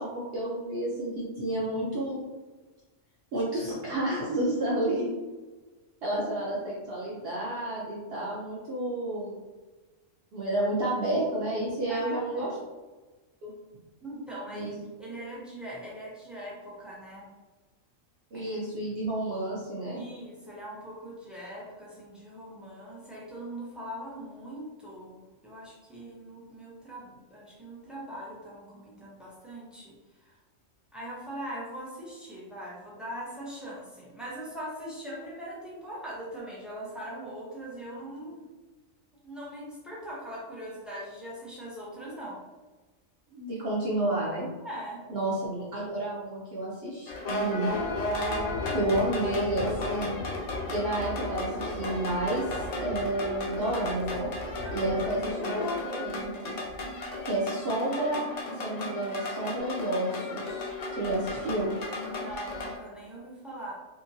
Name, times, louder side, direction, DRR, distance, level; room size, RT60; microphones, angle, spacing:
voice 1, 0.0-2.2 3.3-5.1 6.0-9.4 10.3-12.5 13.4-13.5 14.5-14.7 18.3-20.0 43.3-44.5 45.1-47.7 48.7-50.2 50.7-54.3 54.7-56.5 57.2-58.2 58.6-61.7, right 1 dB, 60° right, -6 dB, 0.7 m, -30 dB
voice 2, 11.9-12.6 14.0-14.7 15.0-17.3 18.3-18.9 20.0-30.4 30.9-38.5 39.2-42.4 44.6-45.0 54.6-55.0 61.9-63.7, equal, ahead, -6 dB, 0.3 m, -41 dB
sound 1, 47.1-62.7, left 2 dB, 80° left, 0.3 m, -34 dB
2.8 x 2.5 x 2.6 m, 1.2 s
omnidirectional pair, 1.4 m